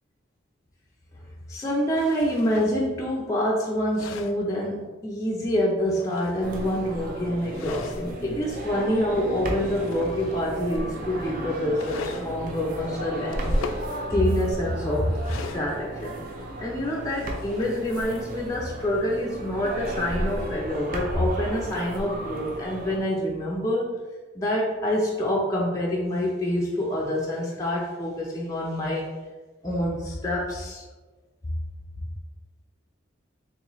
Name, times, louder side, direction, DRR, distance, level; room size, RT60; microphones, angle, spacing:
voice 1, 1.5-13.5 14.1-16.1 16.6-23.9 24.4-29.1 29.6-30.8, equal, 15° left, -4 dB, 0.4 m, -26 dB
sound 1, 1.9-2.8 3.7-4.4 5.7-6.8 7.5-8.1 8.8-8.9 9.4-10.6 11.7-12.3 13.3-13.9 15.2-16.0 16.9-18.2, left 5 dB, 85° left, 0.3 m, -40 dB
sound 2, 6.4-23.0, right 1 dB, 45° right, 0.6 m, -34 dB
3.9 x 3.0 x 3.0 m, 1.2 s
head